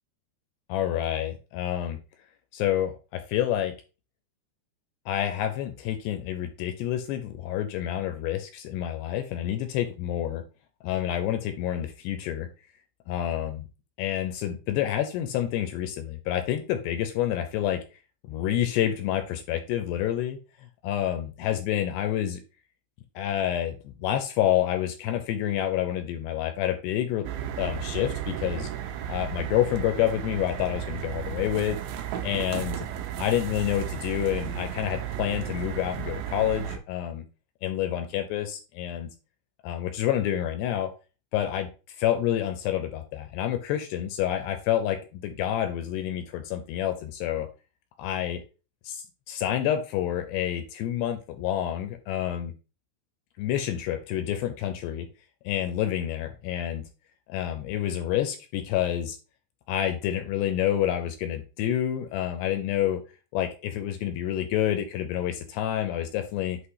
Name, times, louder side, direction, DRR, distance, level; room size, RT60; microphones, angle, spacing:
voice 1, 0.7-2.0 2.5-3.7 5.1-10.4 10.8-12.5 13.1-13.7 14.0-17.8 18.2-20.4 20.8-22.4 23.2-27.3 27.6-28.7 29.1-31.8 32.2-32.9 33.2-37.3 37.6-39.1 39.6-40.9 41.3-47.5 48.0-48.4 48.9-52.5 53.4-55.1 55.5-56.8 57.3-59.2 59.7-63.0 63.3-66.6, left 11 dB, 80° left, 8 dB, 2.5 m, -28 dB
sound 1, 27.2-36.8, right 10 dB, 80° right, 2.9 m, -34 dB
8.2 x 2.9 x 4.6 m, 0.33 s
omnidirectional pair, 5.3 m